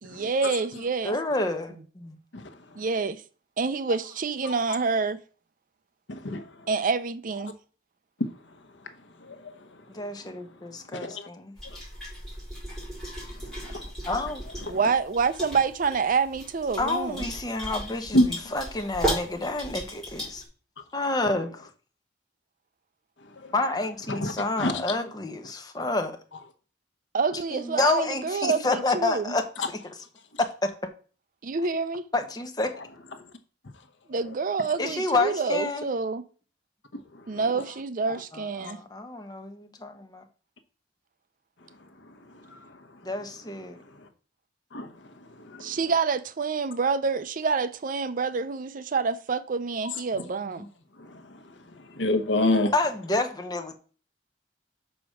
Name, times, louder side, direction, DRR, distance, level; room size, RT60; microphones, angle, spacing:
voice 1, 0.0-1.1 2.8-3.2 3.6-5.2 6.7-7.5 14.7-17.3 27.1-29.3 31.4-32.0 34.1-36.2 37.3-38.8 45.6-50.7, right 4 dB, 45° right, 0.5 m, -27 dB
voice 2, 1.0-2.2 9.9-11.5 14.1-14.4 16.8-20.4 20.9-21.7 23.5-26.2 27.5-29.9 30.4-30.7 32.1-32.7 34.8-35.9 38.3-40.2 43.0-43.8 52.7-53.7, left 2 dB, 20° left, 0.9 m, -29 dB
voice 3, 6.1-6.4 9.2-9.5 11.0-11.3 11.6-11.8 13.7-13.8 14.7-14.8 18.1-18.2 23.4-23.5 24.1-24.3 24.6-24.8 33.2-33.3 42.5-42.6 44.7-44.9 45.4-45.7 51.0-51.1 51.9-52.7, left 1 dB, 70° left, 1.0 m, -26 dB
sound 1, 11.6-20.4, equal, ahead, 4.6 m, -35 dB
6.0 x 5.0 x 6.4 m
head